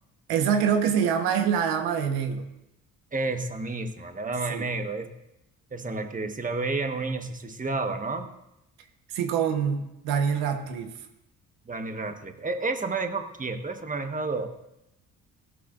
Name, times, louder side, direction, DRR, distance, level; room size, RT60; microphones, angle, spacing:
voice 1, 0.3-2.4 4.5-4.7 9.1-10.9, right 7 dB, 90° right, 5 dB, 1.3 m, -25 dB
voice 2, 3.1-5.1 5.7-8.3 11.7-14.5, right 3 dB, 20° right, 6 dB, 1.3 m, -30 dB
16.5 x 12.5 x 2.6 m, 0.88 s
supercardioid pair, 65°, 36 cm